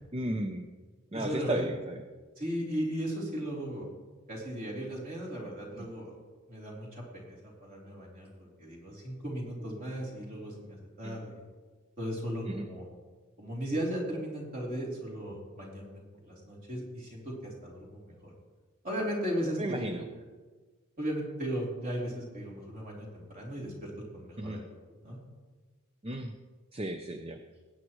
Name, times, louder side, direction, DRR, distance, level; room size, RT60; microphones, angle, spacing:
voice 1, 0.1-0.7 1.1-2.0 11.0-11.2 12.5-12.7 19.6-20.0 24.4-24.6 26.0-26.4 26.7-27.4, right 1 dB, 25° right, 6 dB, 0.5 m, -34 dB
voice 2, 1.1-1.6 2.4-3.8 4.3-6.1 6.5-11.4 12.0-12.9 13.4-18.3 18.8-20.0 21.0-24.6 25.0-25.2, equal, 40° right, -3 dB, 3.0 m, -36 dB
18.5 x 8.8 x 3.1 m, 1.4 s
head